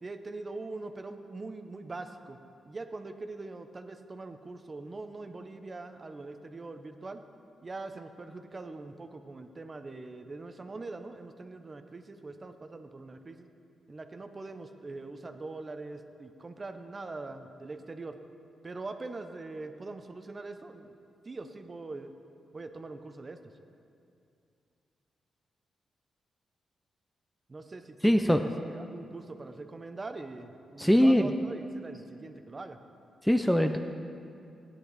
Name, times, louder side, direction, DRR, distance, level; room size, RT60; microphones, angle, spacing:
voice 1, 0.0-2.4 2.6-7.2 7.6-13.5 13.9-18.2 18.6-20.9 21.2-22.1 22.5-23.4 27.5-32.8, right 3 dB, 30° right, 8 dB, 0.7 m, -42 dB
voice 2, 28.0-28.4 30.8-31.3 33.2-33.8, equal, 5° left, 6 dB, 0.5 m, -22 dB
15.5 x 9.9 x 4.0 m, 2.5 s
cardioid pair, 95°, 0 cm